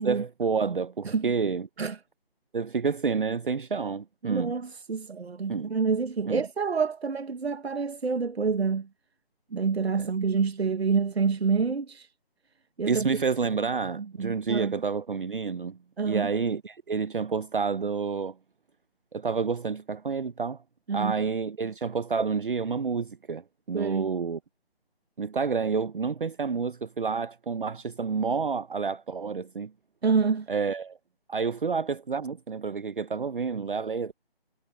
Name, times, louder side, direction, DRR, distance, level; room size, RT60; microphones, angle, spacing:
voice 1, 0.0-1.7 2.5-4.5 5.5-5.7 6.2-6.4 10.0-10.1 12.9-15.8 16.1-18.3 19.1-20.6 20.9-23.4 23.7-24.4 25.2-29.7 30.5-31.0 31.3-34.1, right 5 dB, 55° right, 0.8 m, -29 dB
voice 2, 4.2-8.9 9.5-12.1 12.8-13.1 14.0-14.8 16.0-16.3 20.9-21.1 23.7-24.1 30.0-30.5, right 5 dB, 80° right, 1.2 m, -27 dB
figure-of-eight pair, 170°, 31 cm